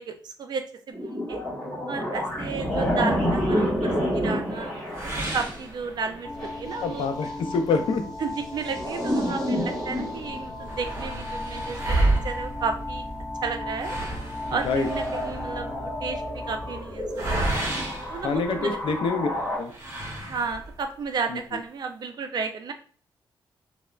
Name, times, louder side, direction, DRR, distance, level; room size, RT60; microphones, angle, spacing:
voice 1, 0.0-1.4 1.9-6.3 6.6-7.1 8.2-13.1 13.4-14.0 14.5-17.7 18.1-18.8 20.3-22.7, right 5 dB, 55° right, 6 dB, 0.4 m, -33 dB
sound 1, 0.9-7.3 8.3-11.0 14.4-19.6, equal, 5° left, 1.4 m, -29 dB
sound 2, 4.9-6.4 6.8-6.9 7.4-7.5 8.3-9.6 9.9-10.0 10.2-19.0 19.7-20.8, right 2 dB, 30° right, 0.8 m, -31 dB
sound 3, 6.2-16.8, left 2 dB, 20° left, 0.4 m, -36 dB
voice 2, 6.8-8.0 14.6-14.9 18.2-19.3 19.6-19.7 21.3-21.4, left 4 dB, 75° left, 6 dB, 0.4 m, -26 dB
3.1 x 2.0 x 2.3 m, 0.43 s
wide cardioid pair, 145°, 9 cm